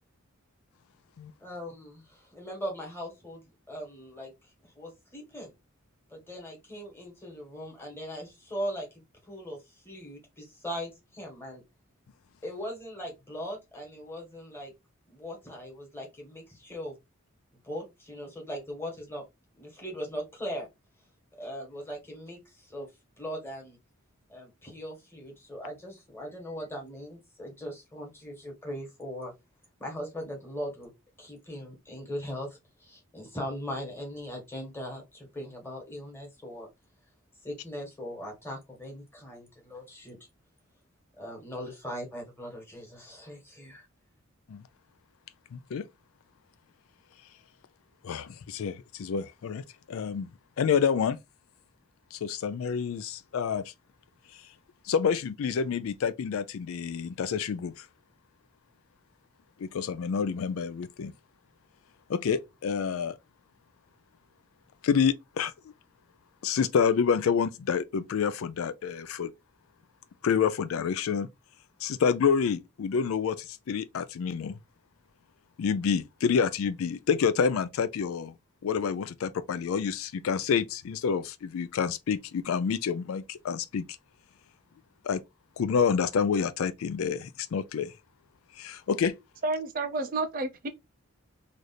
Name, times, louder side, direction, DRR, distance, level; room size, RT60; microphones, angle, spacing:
voice 1, 1.4-3.4 3.7-5.5 6.1-11.6 12.4-14.7 15.1-17.0 17.6-19.2 19.6-20.7 21.4-22.9 23.2-23.8 24.3-29.3 29.8-30.9 31.2-36.7 37.4-40.2 41.2-43.9, equal, 10° left, 1.4 m, -39 dB
voice 2, 45.5-45.8 48.0-49.6 49.9-50.3 50.6-51.2 52.1-53.6 54.9-57.7 59.6-61.1 62.1-63.1 64.8-65.5 66.4-69.3 70.2-71.3 71.8-73.4 73.7-74.5 75.6-78.3 78.6-83.8 85.1-85.2 85.6-87.9 88.6-89.1, left 6 dB, 70° left, 0.4 m, -28 dB
voice 3, 89.4-90.7, right 3 dB, 40° right, 0.4 m, -30 dB
3.2 x 2.5 x 4.0 m
head